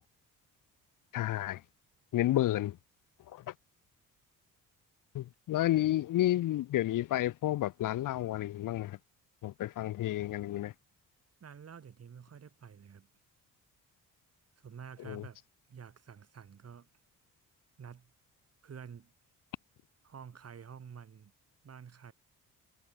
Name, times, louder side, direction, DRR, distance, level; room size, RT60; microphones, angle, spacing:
voice 1, 1.1-1.6 2.1-2.8 3.3-3.5 5.1-9.0 9.4-10.7 15.0-15.2, left 14 dB, 70° left, 0.9 m, -31 dB
voice 2, 11.4-13.1 14.6-15.4 15.7-16.9 17.8-18.1 18.6-19.1 20.0-21.3 21.6-22.1, right 7 dB, 45° right, 5.3 m, -49 dB
cardioid pair, 95°, 33 cm